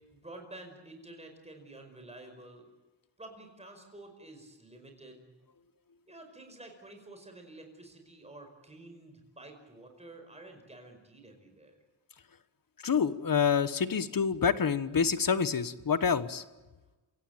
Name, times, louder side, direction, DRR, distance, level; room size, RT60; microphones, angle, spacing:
voice 1, 0.1-2.7 3.2-5.3 6.1-11.8, right 2 dB, 15° right, 4 dB, 5.3 m, -50 dB
voice 2, 12.8-16.4, left 6 dB, 50° left, 14 dB, 1.3 m, -27 dB
27.5 x 17.0 x 9.0 m, 1.1 s
wide cardioid pair, 110°, 45 cm